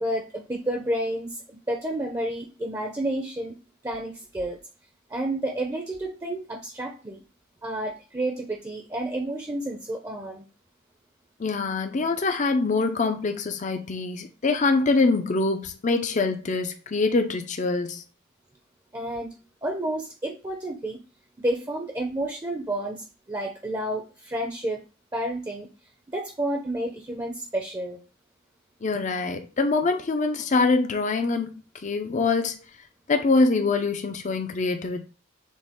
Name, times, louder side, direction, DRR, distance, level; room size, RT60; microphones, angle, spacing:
voice 1, 0.0-3.5 3.8-4.6 5.1-7.2 7.6-10.4 18.9-19.3 19.6-21.0 21.4-24.8 25.1-25.7 26.1-28.0, right 1 dB, 15° right, 0.6 m, -30 dB
voice 2, 11.4-18.0 28.8-31.5 31.8-32.6 33.1-35.0, left 3 dB, 35° left, 0.5 m, -24 dB
6.2 x 2.4 x 3.6 m
head